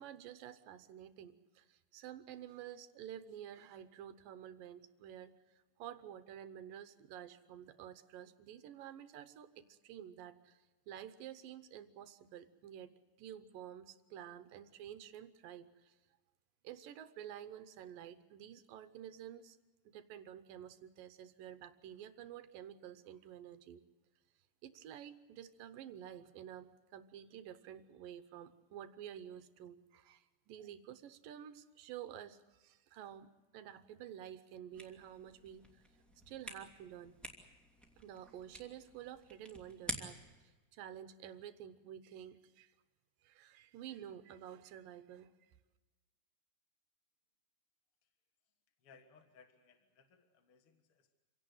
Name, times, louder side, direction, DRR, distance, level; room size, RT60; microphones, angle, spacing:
voice 1, 0.0-5.3 5.8-16.0 16.6-19.6 19.9-23.8 24.6-35.8 36.3-37.2 38.0-42.7 43.2-45.5, right 10 dB, 80° right, 11 dB, 2.6 m, -51 dB
sound 1, 34.7-40.4, right 1 dB, ahead, 2.0 m, -49 dB
voice 2, 48.8-51.1, left 5 dB, 50° left, 6 dB, 1.9 m, -64 dB
26.5 x 17.0 x 7.8 m, 1.2 s
omnidirectional pair, 4.1 m